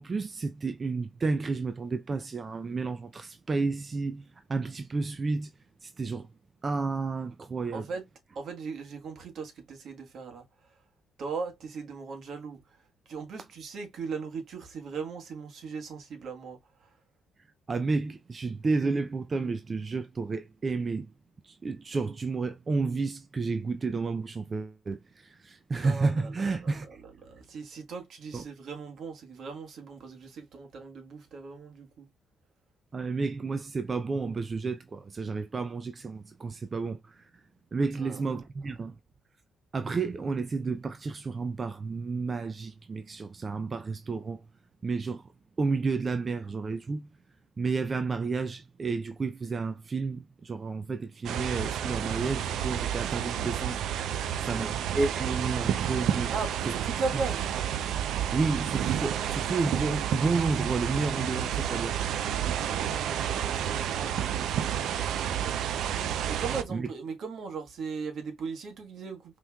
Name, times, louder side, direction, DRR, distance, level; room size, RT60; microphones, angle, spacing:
voice 1, 0.0-4.2 4.5-5.5 5.8-6.3 6.6-7.9 17.7-21.1 21.4-26.9 28.3-28.4 32.9-37.3 37.7-39.0 39.7-44.4 44.8-45.2 45.6-47.1 47.6-53.8 54.4-56.3 57.1-57.2 58.3-62.0 66.7-66.9, right 4 dB, 35° right, 0.5 m, -31 dB
voice 2, 7.7-8.0 8.3-10.4 11.2-12.6 13.1-16.9 25.8-32.1 38.0-38.4 54.4-54.7 56.3-57.5 62.4-65.6 66.3-69.4, right 4 dB, 65° right, 1.3 m, -38 dB
sound 1, 51.2-66.6, right 10 dB, 80° right, 0.5 m, -30 dB
5.4 x 3.1 x 2.3 m
cardioid pair, 90°, 0 cm